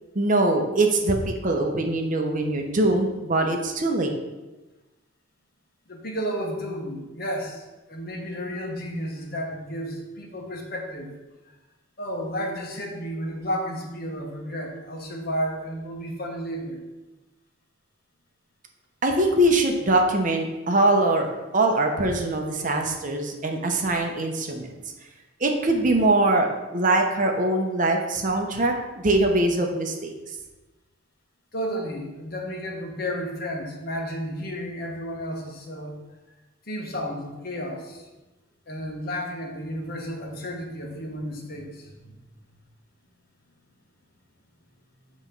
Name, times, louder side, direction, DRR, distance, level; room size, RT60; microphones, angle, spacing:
voice 1, 0.1-4.1 19.0-24.7 25.4-30.1, right 2 dB, 40° right, 3 dB, 0.7 m, -22 dB
voice 2, 5.9-11.1 12.0-16.8 24.0-24.2 31.5-36.0 36.7-38.1 38.7-42.2, equal, 45° left, 1 dB, 1.1 m, -32 dB
7.9 x 3.0 x 5.3 m, 1.1 s
head